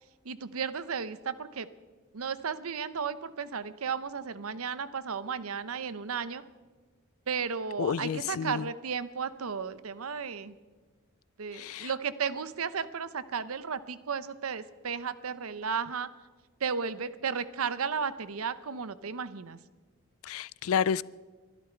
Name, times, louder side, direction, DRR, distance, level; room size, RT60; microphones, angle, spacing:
voice 1, 0.2-1.7 2.1-6.4 7.3-10.5 11.4-16.1 16.6-19.6, right 6 dB, 80° right, 0.7 m, -34 dB
voice 2, 7.8-8.7 11.5-11.9 20.2-21.0, left 7 dB, 70° left, 0.4 m, -30 dB
23.5 x 12.0 x 4.4 m
head